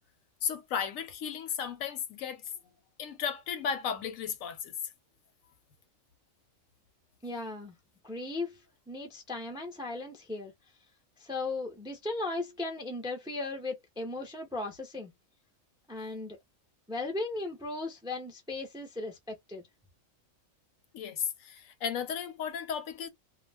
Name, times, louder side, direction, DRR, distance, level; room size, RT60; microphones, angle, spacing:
voice 1, 0.4-2.4 3.0-4.7 20.9-23.1, left 7 dB, 80° left, 1.0 m, -34 dB
voice 2, 7.2-7.7 8.0-8.6 8.9-10.5 11.2-15.1 15.9-16.4 16.9-19.6, left 2 dB, 5° right, 0.3 m, -37 dB
2.4 x 2.0 x 3.2 m
omnidirectional pair, 1.4 m